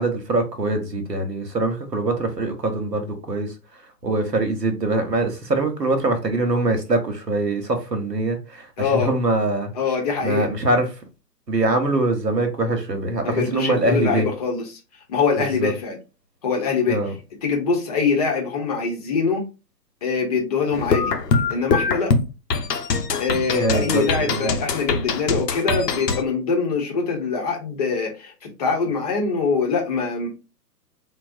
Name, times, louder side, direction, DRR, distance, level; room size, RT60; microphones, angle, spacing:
voice 1, 0.0-3.5 4.0-9.7 10.2-10.9 11.5-14.3 15.4-15.7 16.9-17.1 23.6-24.5, right 2 dB, 90° right, 0.9 m, -23 dB
voice 2, 8.8-9.1 9.7-10.5 13.2-14.6 15.1-16.0 16.4-17.0 17.4-19.4 20.0-21.1 21.5-22.1 23.2-30.3, left 5 dB, 25° left, 0.6 m, -23 dB
sound 1, 20.7-26.2, left 4 dB, 80° left, 0.6 m, -23 dB
3.9 x 2.0 x 2.4 m
figure-of-eight pair, 115°, 48 cm